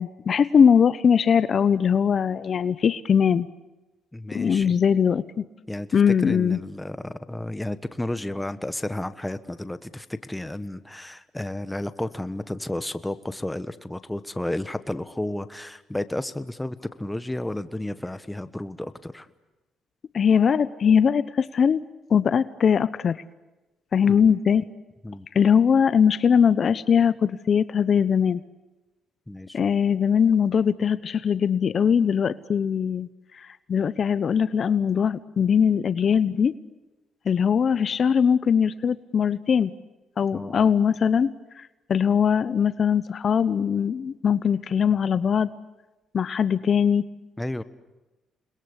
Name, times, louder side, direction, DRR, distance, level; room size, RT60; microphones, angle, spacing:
voice 1, 0.0-3.5 4.3-5.4 5.9-6.6 20.1-21.8 22.1-23.2 23.9-24.7 25.3-28.4 29.5-33.1 33.4-36.5 37.3-39.7 40.2-41.3 41.6-45.5 46.1-47.0, left 7 dB, 50° left, 15 dB, 0.9 m, -21 dB
voice 2, 4.1-4.7 5.7-5.9 6.2-19.3 24.1-24.3 25.0-25.3 29.3-29.6 40.3-40.7 47.4-47.6, left 1 dB, 10° left, 12 dB, 1.3 m, -32 dB
29.0 x 21.5 x 8.3 m, 1.1 s
cardioid pair, 90°, 0 cm